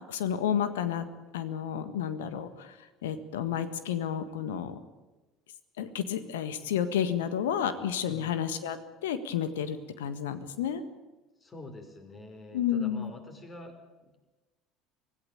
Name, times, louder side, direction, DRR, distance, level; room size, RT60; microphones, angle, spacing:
voice 1, 0.1-1.1 1.3-2.7 3.0-4.8 5.8-10.8 12.5-13.1, left 9 dB, 70° left, 12 dB, 1.6 m, -31 dB
voice 2, 11.4-13.8 14.0-14.2, left 1 dB, 25° left, 6 dB, 5.4 m, -46 dB
25.5 x 16.5 x 9.0 m, 1.2 s
figure-of-eight pair, 65°, 0 cm